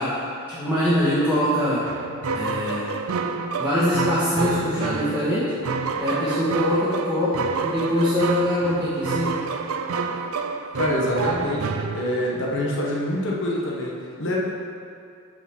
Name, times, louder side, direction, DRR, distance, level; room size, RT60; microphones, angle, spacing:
voice 1, 0.0-1.8 2.3-2.9 3.6-5.5 6.0-9.4, equal, 10° right, -12 dB, 1.7 m, -23 dB
sound 1, 1.8-12.5, right 4 dB, 70° right, 0.5 m, -28 dB
voice 2, 10.8-14.4, left 1 dB, 60° left, -4 dB, 1.4 m, -26 dB
6.8 x 6.4 x 6.2 m, 2.4 s
head